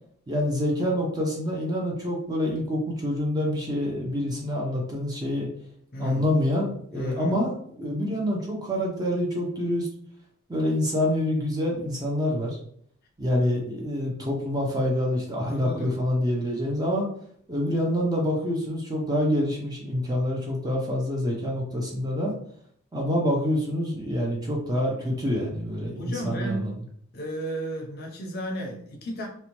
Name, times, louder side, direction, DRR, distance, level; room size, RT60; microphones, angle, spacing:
voice 1, 0.3-5.5 6.0-9.9 10.5-12.5 13.2-17.1 17.5-22.3 22.9-26.7, left 1 dB, 15° right, -2 dB, 0.5 m, -26 dB
voice 2, 5.9-6.2 6.9-7.4 15.4-16.0 25.9-26.8 27.1-29.3, equal, 45° left, 0 dB, 0.5 m, -33 dB
2.7 x 2.1 x 2.9 m, 0.62 s
head